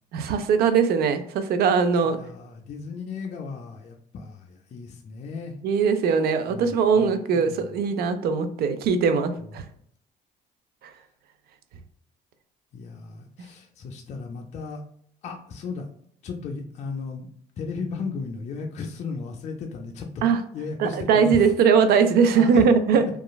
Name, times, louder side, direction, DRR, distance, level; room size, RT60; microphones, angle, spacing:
voice 1, 0.1-2.2 5.6-9.6 20.2-20.4 20.8-23.0, right 6 dB, 65° right, 10 dB, 0.4 m, -20 dB
voice 2, 2.0-5.6 6.5-7.8 12.7-14.8 15.2-15.9 16.2-17.3 17.6-20.2 20.5-21.4 22.3-22.7, left 4 dB, 45° left, 1 dB, 0.4 m, -35 dB
2.9 x 2.4 x 2.2 m, 0.65 s
cardioid pair, 110°, 17 cm